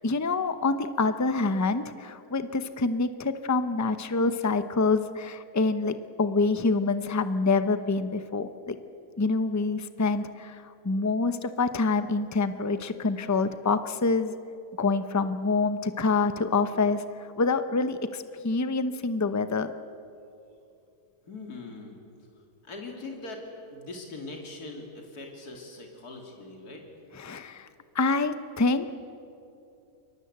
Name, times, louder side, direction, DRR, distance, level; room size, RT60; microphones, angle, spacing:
voice 1, 0.0-8.8 9.2-14.3 14.8-19.7 27.2-27.7 27.9-28.9, left 3 dB, 15° left, 11 dB, 0.5 m, -26 dB
voice 2, 21.2-22.0 22.3-23.4 23.7-26.8, left 3 dB, 65° left, 1 dB, 3.4 m, -41 dB
29.0 x 22.5 x 8.1 m, 2.7 s
omnidirectional pair, 1.7 m